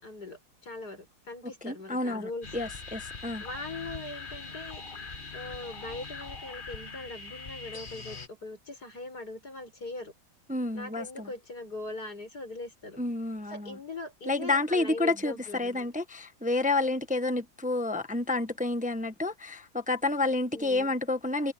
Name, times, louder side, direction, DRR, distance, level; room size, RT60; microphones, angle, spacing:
voice 1, 0.0-2.5 3.4-4.8 5.3-10.1 10.7-13.0 13.5-15.9 20.5-21.0, left 2 dB, 50° left, 6.6 m, -41 dB
voice 2, 1.6-3.4 10.5-11.3 13.0-13.8 14.3-21.5, left 2 dB, 5° right, 0.9 m, -29 dB
sound 1, 2.4-8.3, left 4 dB, 25° left, 1.6 m, -42 dB
omnidirectional pair, 2.1 m